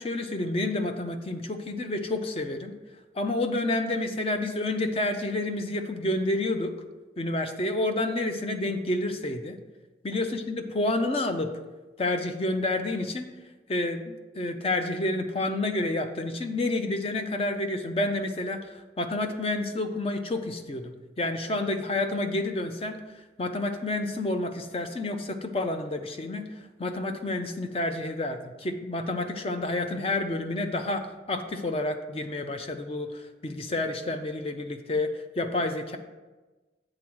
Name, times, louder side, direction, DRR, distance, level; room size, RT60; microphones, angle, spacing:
voice 1, 0.0-2.7 3.1-6.7 7.2-9.6 10.0-11.6 12.0-13.3 13.7-14.0 14.3-36.0, left 2 dB, 30° left, 6 dB, 0.5 m, -29 dB
7.3 x 3.8 x 6.2 m, 1.2 s
head